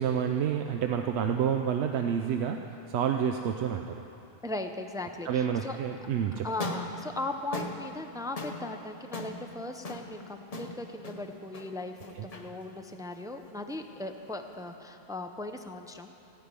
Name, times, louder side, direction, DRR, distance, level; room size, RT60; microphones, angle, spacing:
voice 1, 0.0-4.0 5.2-6.5 12.1-12.3, right 8 dB, 90° right, 5 dB, 0.9 m, -29 dB
voice 2, 4.4-5.8 6.4-16.1, left 2 dB, 5° right, 5 dB, 0.4 m, -38 dB
sound 1, 6.5-14.7, left 2 dB, 40° left, 1.0 m, -41 dB
16.0 x 5.9 x 9.6 m, 2.8 s
omnidirectional pair, 1.1 m